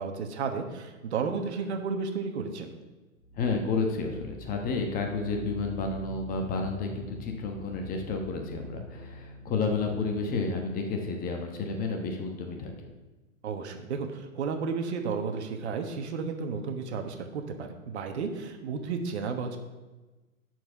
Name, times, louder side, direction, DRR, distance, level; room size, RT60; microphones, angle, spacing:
voice 1, 0.0-2.7 13.4-19.6, right 5 dB, 50° right, 5 dB, 1.3 m, -33 dB
sound 1, 3.2-11.9, left 2 dB, 80° left, 1.6 m, -45 dB
voice 2, 3.3-12.7, left 4 dB, 20° left, 3 dB, 1.1 m, -31 dB
12.0 x 4.6 x 5.8 m, 1.2 s
figure-of-eight pair, 115°, 41 cm